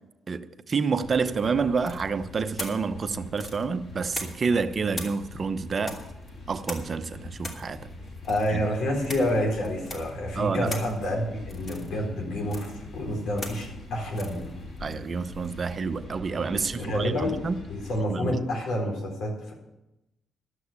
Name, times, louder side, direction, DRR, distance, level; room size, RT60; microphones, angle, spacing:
voice 1, 0.3-6.0 6.5-7.9 8.5-8.7 10.3-10.7 14.8-17.6 18.1-18.4, right 5 dB, 45° right, 10 dB, 0.8 m, -28 dB
sound 1, 1.0-18.0, left 2 dB, 55° left, 5.9 m, -43 dB
sound 2, 1.8-4.6 4.9-15.9, left 1 dB, 40° left, 2.8 m, -42 dB
voice 2, 8.3-14.6 16.5-17.4 17.7-19.5, left 1 dB, 75° left, -1 dB, 4.1 m, -28 dB
12.5 x 6.4 x 8.7 m, 0.93 s
supercardioid pair, 65°, 0 cm